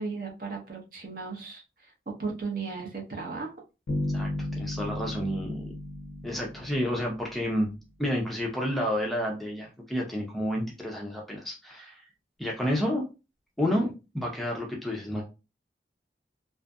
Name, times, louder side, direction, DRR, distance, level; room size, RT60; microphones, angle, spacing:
voice 1, 0.0-1.6 2.2-3.5 13.7-13.9, right 4 dB, 50° right, 1 dB, 0.7 m, -35 dB
sound 1, 3.9-7.6, left 1 dB, 75° left, 0.4 m, -34 dB
voice 2, 4.6-5.7 6.2-7.7 8.0-12.0 12.4-13.0 13.6-13.9 14.1-15.2, equal, ahead, -1 dB, 0.4 m, -30 dB
2.5 x 2.4 x 2.3 m, 0.29 s
head